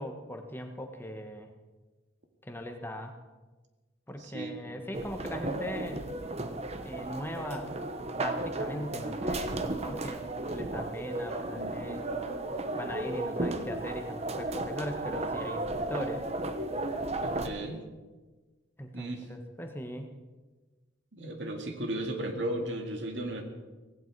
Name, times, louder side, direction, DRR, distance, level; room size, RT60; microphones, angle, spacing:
voice 1, 0.0-1.5 2.4-3.2 4.1-6.1 6.8-7.9 8.2-12.1 12.7-16.2 18.8-20.1, left 1 dB, 10° left, 4 dB, 1.2 m, -39 dB
voice 2, 4.2-4.6 17.1-17.8 18.9-19.2 21.1-23.4, right 1 dB, 70° right, 4 dB, 2.1 m, -35 dB
sound 1, 4.9-17.5, right 2 dB, 35° right, 1.0 m, -34 dB
17.0 x 16.5 x 4.7 m, 1.3 s
head